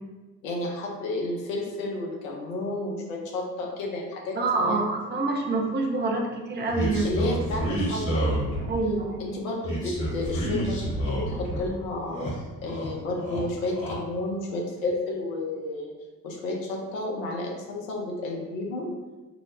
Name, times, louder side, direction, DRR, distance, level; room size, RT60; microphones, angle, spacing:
voice 1, 0.4-4.8 7.0-8.7 9.2-12.2 12.6-15.9 16.2-18.9, left 2 dB, 75° left, -1 dB, 0.6 m, -31 dB
voice 2, 4.4-7.1 8.7-9.3, right 3 dB, 25° right, 1 dB, 0.5 m, -26 dB
sound 1, 6.7-8.9 9.6-11.6 11.9-12.9 13.2-14.0, right 1 dB, 45° left, 1.2 m, -29 dB
2.6 x 2.0 x 3.1 m, 1.2 s
figure-of-eight pair, 45°, 40 cm